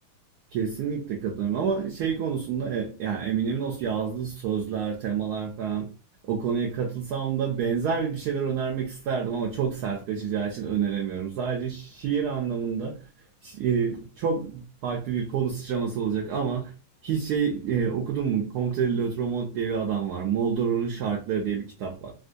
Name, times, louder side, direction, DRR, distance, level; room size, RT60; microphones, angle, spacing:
voice 1, 0.5-5.9 6.2-13.0 13.4-16.7 17.0-22.1, right 7 dB, 75° right, 0.9 m, -28 dB
3.6 x 2.5 x 2.5 m
omnidirectional pair, 2.2 m